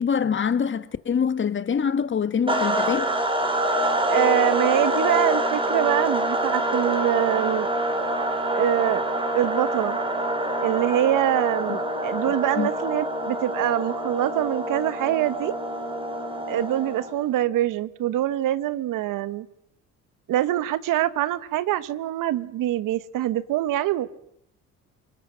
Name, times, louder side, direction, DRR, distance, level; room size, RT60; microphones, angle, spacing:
voice 1, 0.0-3.1 12.6-12.7, left 7 dB, 35° left, 1.4 m, -24 dB
sound 1, 2.5-17.2, right 1 dB, 15° right, 4.0 m, -26 dB
voice 2, 4.1-7.7 8.5-9.0 9.3-10.0 10.6-15.5 16.5-19.5 20.3-24.1, right 13 dB, 70° right, 1.2 m, -24 dB
29.0 x 19.0 x 6.3 m
supercardioid pair, 85°, 34 cm